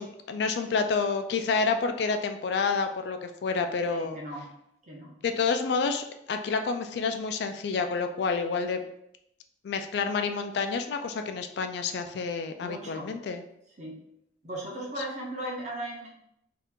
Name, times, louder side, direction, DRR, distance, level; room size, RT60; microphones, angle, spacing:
voice 1, 0.0-4.2 5.2-8.8 9.6-13.4, left 4 dB, 65° left, 7 dB, 0.3 m, -29 dB
voice 2, 3.8-4.5 4.8-5.2 12.6-13.1 13.8-14.0 14.4-16.1, right 1 dB, 40° right, -2 dB, 0.8 m, -37 dB
2.8 x 2.4 x 3.5 m, 0.77 s
head